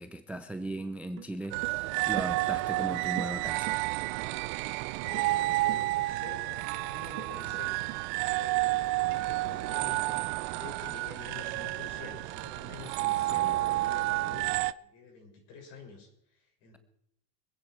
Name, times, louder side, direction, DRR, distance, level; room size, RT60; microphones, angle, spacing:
voice 1, 0.0-3.8 13.3-13.6, right 1 dB, 5° right, 10 dB, 0.5 m, -38 dB
sound 1, 0.8-0.9 1.2-1.8 2.1-6.2 7.2-7.6 7.9-8.0 8.6-8.7 9.1-10.2 11.1-11.9, right 15 dB, 65° right, 1.7 m, -44 dB
sound 2, 1.5-14.7, right 19 dB, 45° right, 0.6 m, -30 dB
voice 2, 5.0-7.7 8.3-10.3 10.5-16.8, left 5 dB, 50° left, 2 dB, 6.2 m, -48 dB
25.0 x 9.7 x 4.5 m, 0.76 s
hypercardioid pair, 105°, 50 cm